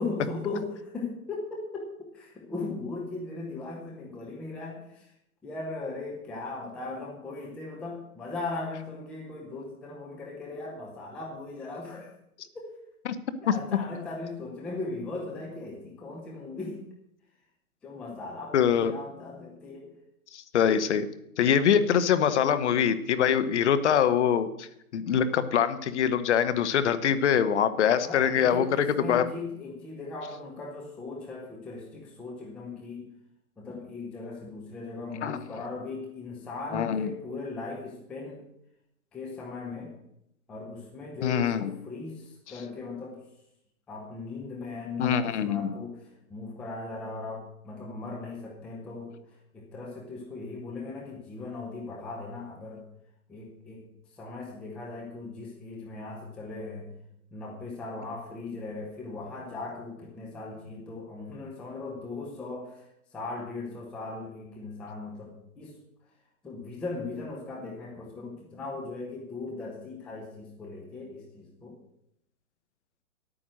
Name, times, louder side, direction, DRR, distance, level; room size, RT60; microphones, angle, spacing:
voice 1, 0.0-1.9 2.1-5.1 5.4-12.1 12.5-12.7 13.4-16.8 17.8-19.9 28.0-33.1 33.6-38.4 39.1-39.9 40.5-43.2 43.9-45.9 46.3-49.1 49.5-52.8 53.3-53.8 54.2-56.9 57.3-62.9 63.1-65.7 66.4-71.8, left 3 dB, 5° left, -1 dB, 0.5 m, -38 dB
voice 2, 13.5-13.8 18.5-18.9 20.3-21.1 21.4-24.7 24.9-29.3 35.2-35.4 36.7-37.1 41.2-41.7 45.0-45.8, left 8 dB, 50° left, 12 dB, 1.1 m, -24 dB
10.5 x 8.9 x 6.3 m, 0.79 s
hypercardioid pair, 140°, 46 cm